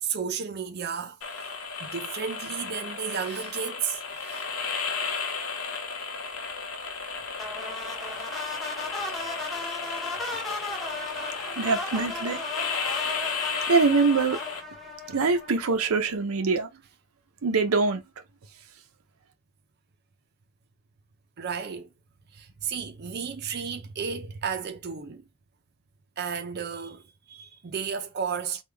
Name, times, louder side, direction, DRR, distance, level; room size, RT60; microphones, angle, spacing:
voice 1, 0.0-1.2 1.8-4.5 21.4-21.9 22.3-25.2 26.2-28.6, right 6 dB, 50° right, 0.5 m, -33 dB
sound 1, 1.2-14.6, left 5 dB, 80° left, 0.8 m, -34 dB
sound 2, 7.4-15.8, left 2 dB, ahead, 0.7 m, -36 dB
voice 2, 11.6-12.4 13.7-14.4 15.1-16.7 17.4-18.0, right 4 dB, 90° right, 0.6 m, -23 dB
3.6 x 2.3 x 3.3 m
head